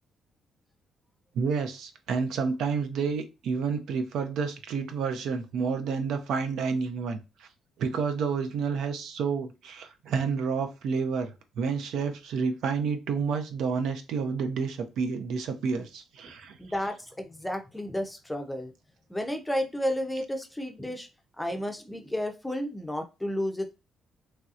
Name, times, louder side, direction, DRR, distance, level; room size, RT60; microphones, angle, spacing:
voice 1, 1.3-7.5 7.8-16.6, right 5 dB, 80° right, 0.5 m, -30 dB
voice 2, 16.6-18.7 19.1-21.1 21.4-23.7, equal, 5° left, 0.5 m, -32 dB
3.1 x 2.7 x 2.4 m
cardioid pair, 90°, 0 cm